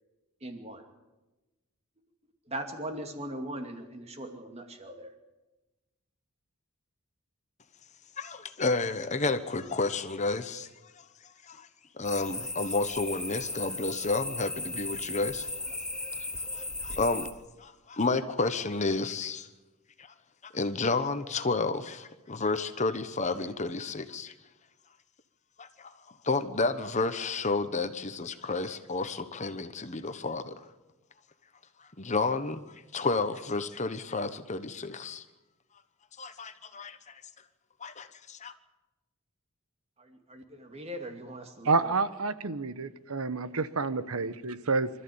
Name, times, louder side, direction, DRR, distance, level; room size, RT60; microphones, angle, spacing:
voice 1, 0.4-0.8 2.5-5.1 40.0-42.0, right 1 dB, 30° right, 2.5 m, -40 dB
voice 2, 8.2-10.7 11.0-11.1 11.4-11.7 12.0-15.5 16.5-17.3 17.6-19.5 20.0-20.1 20.4-24.3 25.6-25.9 26.2-30.6 32.0-35.2 36.2-37.2 37.8-38.5, left 3 dB, 30° left, 1.1 m, -31 dB
sound 1, 12.0-17.3, left 2 dB, 5° left, 1.0 m, -36 dB
voice 3, 41.6-44.9, right 4 dB, 75° right, 1.1 m, -29 dB
25.5 x 14.0 x 8.7 m
head